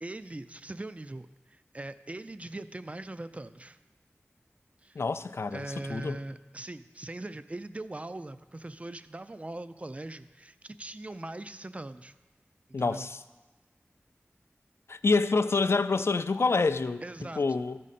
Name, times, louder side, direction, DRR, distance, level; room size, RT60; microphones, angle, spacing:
voice 1, 0.0-3.8 4.8-5.0 5.5-12.1 12.8-13.1 17.0-17.6, right 2 dB, 30° right, 13 dB, 0.4 m, -41 dB
voice 2, 5.0-6.2 12.7-13.2 14.9-17.0 17.4-17.8, left 4 dB, 65° left, 13 dB, 0.3 m, -27 dB
13.5 x 5.0 x 4.2 m, 1.2 s
wide cardioid pair, 60°, 5 cm